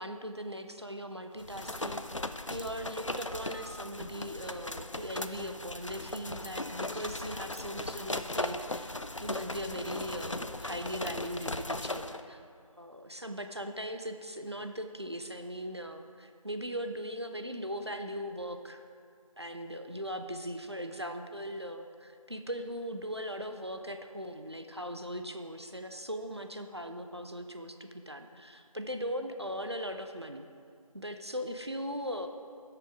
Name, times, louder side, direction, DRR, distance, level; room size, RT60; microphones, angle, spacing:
voice 1, 0.0-2.0 2.5-12.4 12.8-18.8 19.4-30.5 30.9-32.3, equal, 45° right, 6 dB, 0.6 m, -39 dB
sound 1, 1.4-12.2, left 2 dB, 55° left, 0.4 m, -38 dB
10.5 x 6.6 x 4.8 m, 2.2 s
figure-of-eight pair, 180°, 19 cm